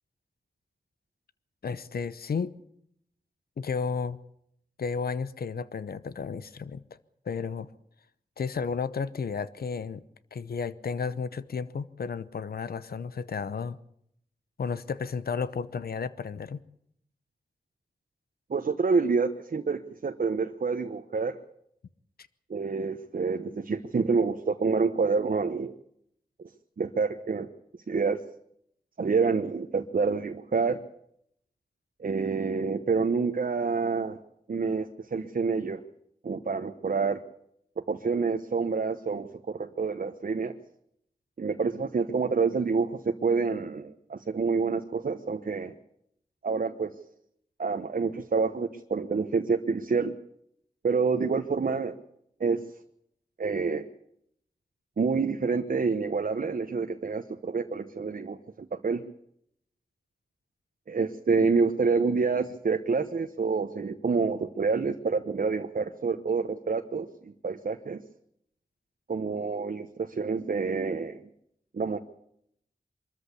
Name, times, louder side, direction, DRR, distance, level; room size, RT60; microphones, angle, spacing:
voice 1, 1.6-2.5 3.6-4.2 4.8-6.8 7.2-7.7 8.4-10.0 10.3-13.8 14.6-16.6, left 5 dB, 90° left, 0.8 m, -32 dB
voice 2, 18.5-21.4 22.5-25.7 26.8-27.5 27.9-28.2 29.0-30.8 32.0-34.2 34.5-35.8 36.2-37.2 37.9-40.6 41.4-45.7 46.4-46.9 47.6-50.2 50.8-52.0 52.4-52.6 53.4-53.9 55.0-58.4 58.7-59.1 60.9-68.0 69.1-71.2 71.7-72.0, right 4 dB, 70° right, 1.1 m, -27 dB
24.0 x 13.5 x 8.4 m
cardioid pair, 55°, 15 cm